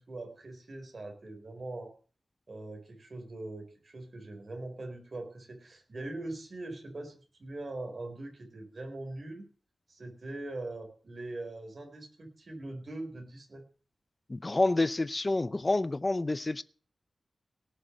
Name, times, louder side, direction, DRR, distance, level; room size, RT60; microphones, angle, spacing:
voice 1, 0.1-1.9 2.5-9.5 9.9-13.6, right 2 dB, 50° right, 4 dB, 4.3 m, -42 dB
voice 2, 14.3-16.6, left 2 dB, 30° left, 15 dB, 0.6 m, -28 dB
18.0 x 6.6 x 7.3 m, 0.40 s
wide cardioid pair, 80°, 0 cm